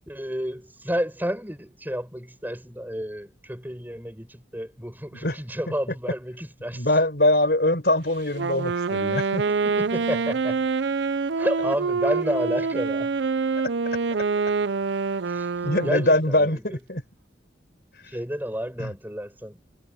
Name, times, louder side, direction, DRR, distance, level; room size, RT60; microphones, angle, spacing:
voice 1, 0.1-6.9 9.5-10.6 11.4-13.1 15.3-15.5 15.8-16.8 18.1-19.6, equal, 10° right, 6.9 m, -31 dB
voice 2, 6.7-9.4 15.6-17.0 18.8-18.9, left 1 dB, 55° left, 4.7 m, -22 dB
Wind instrument woodwind instrument, 8.3-16.2, right 4 dB, 75° right, 0.6 m, -26 dB
head